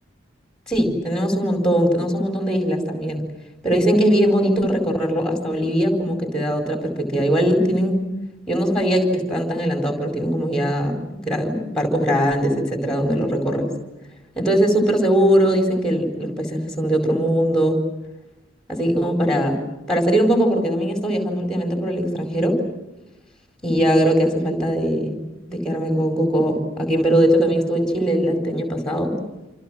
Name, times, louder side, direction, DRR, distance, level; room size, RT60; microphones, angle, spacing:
voice 1, 0.7-3.3 3.6-8.0 8.5-11.0 11.3-13.7 14.3-17.8 18.7-19.6 19.9-22.6 23.6-25.1 25.5-29.2, equal, 5° left, 3 dB, 4.5 m, -20 dB
27.5 x 27.5 x 6.4 m, 1.0 s
head